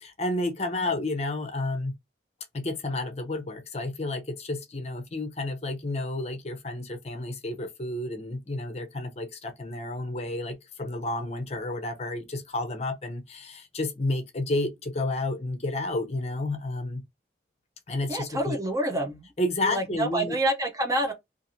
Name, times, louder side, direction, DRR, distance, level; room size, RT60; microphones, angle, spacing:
voice 1, 0.0-1.9 2.5-17.0 17.9-18.6 19.4-20.4, left 2 dB, 35° left, 0.6 m, -31 dB
voice 2, 18.1-19.3 19.6-21.1, right 1 dB, 20° right, 0.5 m, -27 dB
2.6 x 2.5 x 2.7 m
head